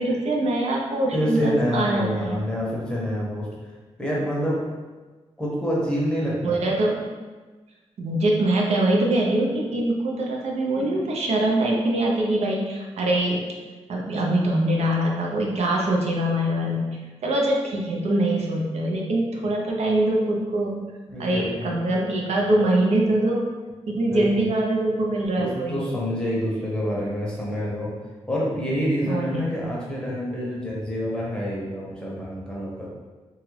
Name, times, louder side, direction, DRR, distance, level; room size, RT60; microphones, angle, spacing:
voice 1, 0.0-2.4 6.4-7.0 8.0-13.5 13.9-20.8 21.2-23.5 23.9-25.8 29.1-29.5, right 1 dB, 75° right, -1 dB, 0.5 m, -23 dB
voice 2, 1.1-3.5 4.0-4.6 5.4-6.6 21.1-21.8 24.1-24.4 25.4-27.9 28.3-32.9, equal, 10° left, -5 dB, 0.7 m, -27 dB
2.9 x 2.3 x 3.1 m, 1.3 s
wide cardioid pair, 140°, 11 cm